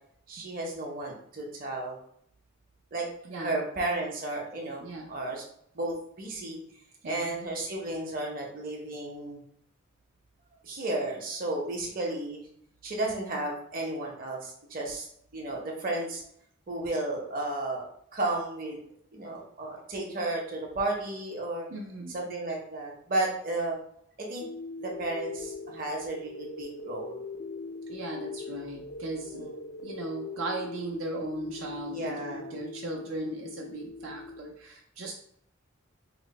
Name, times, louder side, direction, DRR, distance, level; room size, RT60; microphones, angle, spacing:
voice 1, 0.3-2.0 2.9-3.1 3.4-5.4 5.7-6.6 7.0-9.4 10.6-12.4 12.8-15.1 15.3-16.2 16.7-17.8 18.1-18.8 19.1-21.7 22.1-23.8 24.2-24.5 24.8-27.2 29.3-29.6 31.9-32.5, right 2 dB, 45° right, -1 dB, 0.8 m, -33 dB
voice 2, 3.2-3.6 4.8-5.1 7.0-7.3 21.7-22.2 27.9-29.5 29.8-35.1, right 2 dB, 75° right, -1 dB, 0.5 m, -37 dB
sound 1, 24.4-34.4, left 3 dB, 60° left, 0.4 m, -41 dB
2.9 x 2.1 x 4.0 m, 0.68 s
head